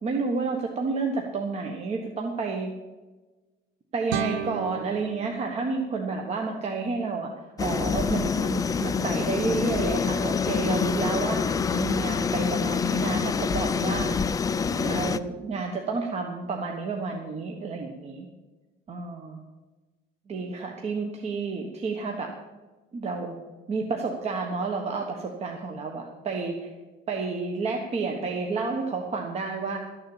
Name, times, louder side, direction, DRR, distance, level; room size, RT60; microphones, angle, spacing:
voice 1, 0.0-2.7 3.9-7.3 7.6-14.1 14.7-18.3 18.9-19.4 20.3-22.3 22.9-23.4 23.7-26.7 27.1-29.8, right 4 dB, 35° right, 2 dB, 1.3 m, -30 dB
sound 1, 4.1-7.1, right 9 dB, 90° right, 1.0 m, -35 dB
sound 2, 7.6-15.2, left 5 dB, 20° left, 0.4 m, -26 dB
13.0 x 6.9 x 8.2 m, 1.2 s
cardioid pair, 155°, 19 cm